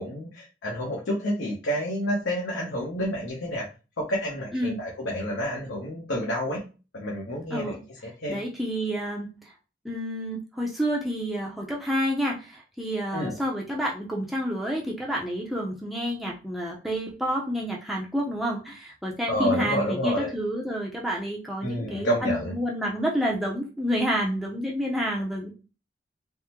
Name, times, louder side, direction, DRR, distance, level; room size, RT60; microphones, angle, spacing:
voice 1, 0.0-3.7 4.0-6.7 6.9-7.8 8.2-8.4 13.1-13.4 19.3-20.4 21.6-22.5, equal, 85° left, -4 dB, 0.8 m, -29 dB
voice 2, 8.3-9.3 9.8-25.5, equal, ahead, -3 dB, 0.5 m, -29 dB
3.5 x 2.0 x 2.9 m, 0.32 s
head